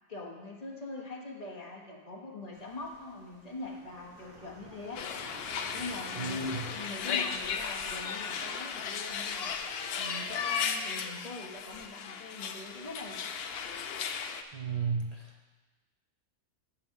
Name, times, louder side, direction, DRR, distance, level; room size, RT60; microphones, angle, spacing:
voice 1, 0.1-5.0 5.7-9.5 10.0-13.3, left 2 dB, 30° left, -3 dB, 1.2 m, -43 dB
sound 1, 2.5-7.5, right 1 dB, 15° right, 1.9 m, -51 dB
sound 2, 5.0-14.4, left 6 dB, 65° left, 0.6 m, -35 dB
voice 2, 6.2-6.7 14.5-15.5, right 4 dB, 45° right, 0 dB, 0.5 m, -34 dB
7.1 x 5.6 x 7.4 m, 1.3 s
omnidirectional pair, 1.5 m